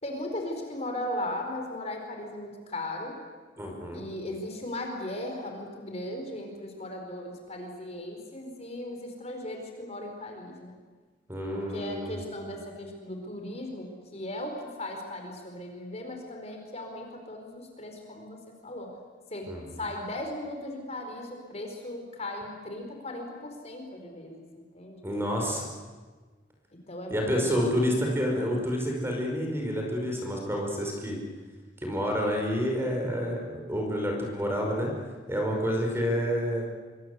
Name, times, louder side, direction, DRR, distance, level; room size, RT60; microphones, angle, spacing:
voice 1, 0.0-3.2 3.9-10.8 11.5-18.9 19.3-19.5 19.8-25.0 26.9-28.2, left 1 dB, 35° left, 3 dB, 4.5 m, -37 dB
voice 2, 3.6-4.0 11.3-12.2 19.5-19.6 25.0-25.7 27.1-31.2 31.8-34.9 35.3-36.6, equal, 15° right, 1 dB, 5.2 m, -29 dB
26.0 x 24.5 x 8.2 m, 1.4 s
head